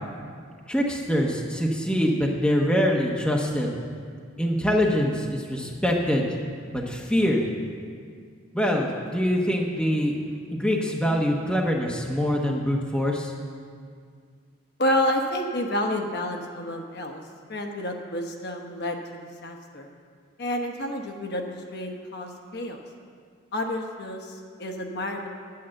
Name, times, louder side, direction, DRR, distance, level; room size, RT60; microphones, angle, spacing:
voice 1, 0.7-3.7 4.4-6.3 6.7-7.4 8.5-10.2 10.5-13.3, equal, 5° left, -1 dB, 0.9 m, -24 dB
voice 2, 14.8-17.2 17.5-19.0 19.4-19.9 20.4-21.4 21.7-22.8 23.5-25.3, left 1 dB, 50° left, 3 dB, 1.0 m, -29 dB
9.2 x 8.7 x 7.6 m, 2.1 s
head